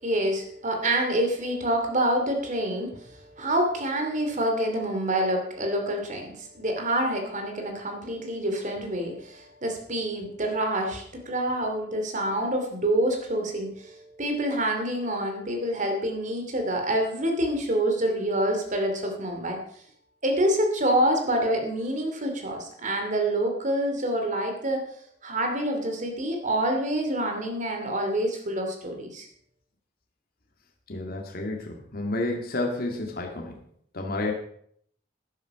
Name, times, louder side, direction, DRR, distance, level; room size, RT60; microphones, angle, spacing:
voice 1, 0.0-19.6 20.2-24.8 25.2-29.3, right 1 dB, 45° right, 3 dB, 2.7 m, -27 dB
voice 2, 30.9-33.6 33.9-34.3, left 2 dB, 55° left, 1 dB, 2.0 m, -30 dB
12.0 x 11.0 x 4.9 m, 0.64 s
head